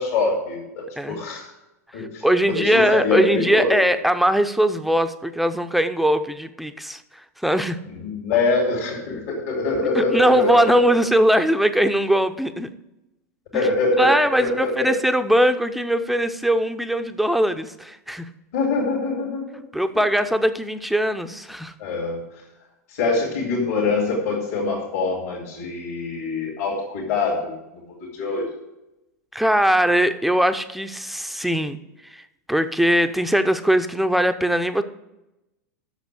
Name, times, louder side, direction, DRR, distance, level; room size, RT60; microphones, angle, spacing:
voice 1, 0.0-1.5 1.9-3.8 7.9-11.0 13.5-15.0 18.5-19.6 21.8-22.2 22.9-27.6 28.1-28.4, left 3 dB, 60° left, -3 dB, 2.9 m, -24 dB
voice 2, 2.0-7.0 7.4-7.8 10.0-12.7 13.5-13.7 14.0-18.3 19.7-21.7 29.3-31.8 32.1-32.2 32.5-34.8, equal, ahead, 9 dB, 0.6 m, -20 dB
8.1 x 6.8 x 8.0 m, 0.94 s
figure-of-eight pair, 95°, 9 cm